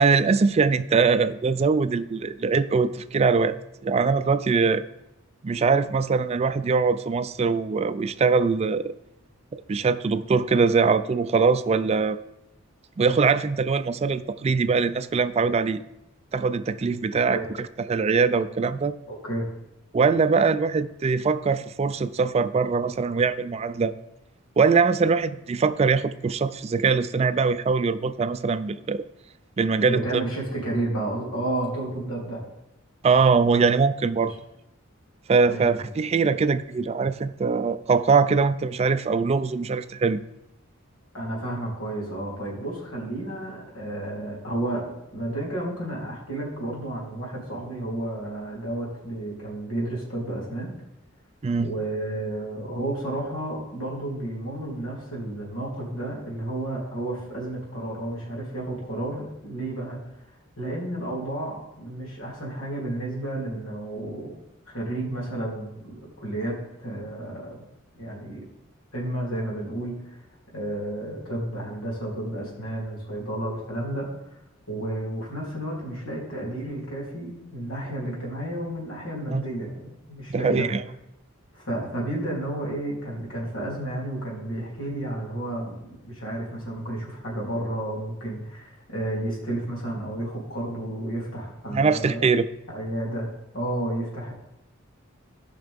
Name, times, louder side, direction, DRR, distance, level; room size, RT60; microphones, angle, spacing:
voice 1, 0.0-3.6 3.8-4.8 5.4-8.9 9.5-12.2 13.0-15.8 16.3-18.9 19.9-23.9 24.6-29.0 29.6-30.0 33.0-34.3 35.3-40.2 51.4-51.7 79.3-79.4 80.3-80.8 91.7-92.5, right 4 dB, 30° right, 12 dB, 0.3 m, -22 dB
voice 2, 19.1-19.5 29.8-32.4 34.2-34.3 35.5-35.8 41.1-50.7 51.6-60.0 60.6-64.3 64.7-67.6 68.0-68.4 68.9-70.2 70.5-74.4 74.7-80.7 81.5-92.2 92.7-93.3 93.5-94.3, right 1 dB, 85° left, -3 dB, 3.2 m, -31 dB
16.5 x 5.7 x 3.6 m, 0.87 s
head